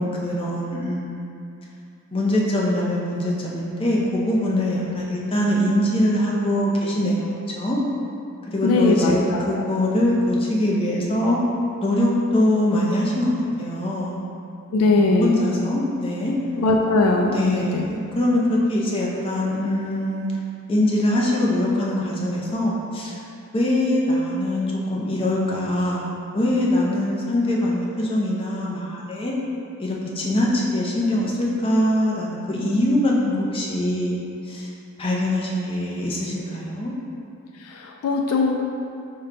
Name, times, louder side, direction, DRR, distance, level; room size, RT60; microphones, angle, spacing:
voice 1, 0.0-1.4 2.1-7.3 7.6-7.8 8.5-9.2 9.5-11.4 11.8-13.3 13.6-14.2 14.9-16.3 17.2-20.3 20.7-23.2 23.5-26.1 26.3-29.3 29.8-34.2 34.5-34.7 35.0-36.9, left 1 dB, 25° left, -4 dB, 0.5 m, -23 dB
voice 2, 8.6-9.6 14.7-15.4 16.6-17.9 37.6-38.6, left 3 dB, 80° left, 1 dB, 0.3 m, -20 dB
4.6 x 2.2 x 3.7 m, 2.6 s
head